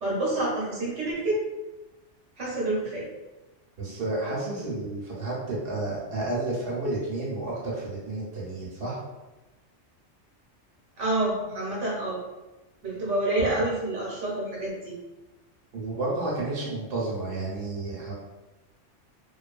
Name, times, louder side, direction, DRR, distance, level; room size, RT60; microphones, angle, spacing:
voice 1, 0.0-1.4 2.4-3.1 11.0-12.2 12.8-14.9, right 1 dB, 75° right, -5 dB, 1.1 m, -28 dB
voice 2, 3.8-9.0 15.7-18.1, right 2 dB, 55° right, -6 dB, 1.0 m, -31 dB
2.6 x 2.3 x 2.4 m, 1.1 s
omnidirectional pair, 1.2 m